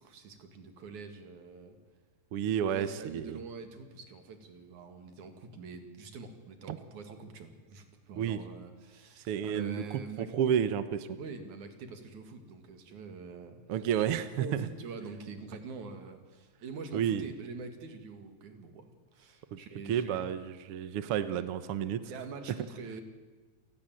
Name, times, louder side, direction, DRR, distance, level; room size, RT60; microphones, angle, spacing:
voice 1, 0.0-1.8 2.7-10.3 11.2-13.6 14.0-20.3 21.3-21.4 22.0-23.0, right 4 dB, 75° right, 7 dB, 3.6 m, -45 dB
voice 2, 2.3-3.4 6.7-6.8 8.2-8.4 9.2-9.8 10.2-11.1 13.7-14.6 16.9-17.3 19.5-19.6 19.9-22.0, right 9 dB, 60° right, 12 dB, 1.7 m, -30 dB
29.0 x 19.0 x 7.8 m, 1.3 s
omnidirectional pair, 3.4 m